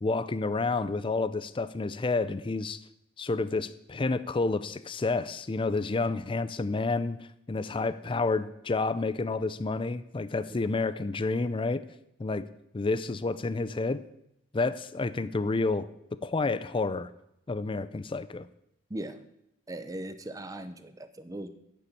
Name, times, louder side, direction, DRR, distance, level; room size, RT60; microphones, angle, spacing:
voice 1, 0.0-2.8 3.2-11.8 12.2-12.5 12.7-14.0 14.5-15.9 16.2-17.1 17.5-18.5, left 3 dB, 25° left, 15 dB, 0.4 m, -29 dB
voice 2, 19.7-21.5, right 1 dB, 15° right, 10 dB, 0.7 m, -38 dB
9.5 x 6.9 x 8.5 m, 0.79 s
head